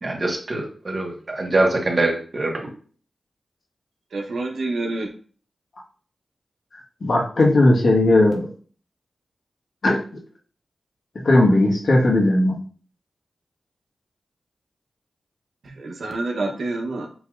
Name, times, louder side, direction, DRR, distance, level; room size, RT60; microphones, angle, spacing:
voice 1, 0.0-2.6, right 2 dB, 45° right, 0 dB, 1.4 m, -23 dB
voice 2, 4.1-5.1 15.6-17.1, right 2 dB, 85° right, 1 dB, 0.9 m, -27 dB
voice 3, 7.0-8.5 9.8-10.0 11.2-12.5, left 2 dB, 70° left, -1 dB, 1.4 m, -17 dB
6.8 x 2.9 x 2.5 m, 0.42 s
cardioid pair, 60°, 0 cm